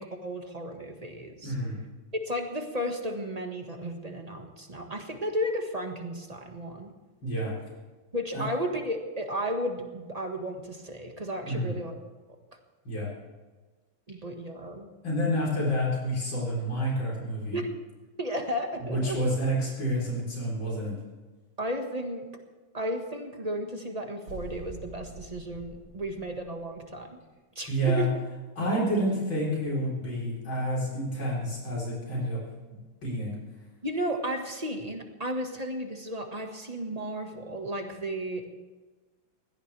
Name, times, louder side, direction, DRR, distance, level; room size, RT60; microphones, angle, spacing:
voice 1, 0.0-1.5 2.1-6.9 8.1-12.0 14.1-14.9 17.5-17.7 18.2-19.2 21.6-22.2 22.7-27.2 27.5-28.1 33.8-38.5, equal, 20° right, 3 dB, 1.6 m, -33 dB
voice 2, 1.4-1.8 7.2-7.5 8.3-8.4 11.4-11.7 12.8-13.1 15.0-17.6 18.9-20.9 27.7-28.1 28.6-32.4 33.0-33.3, equal, 75° left, -5 dB, 4.9 m, -29 dB
sound 1, 24.3-27.0, right 2 dB, 60° right, 2.7 m, -46 dB
21.5 x 17.0 x 3.4 m, 1.3 s
omnidirectional pair, 2.1 m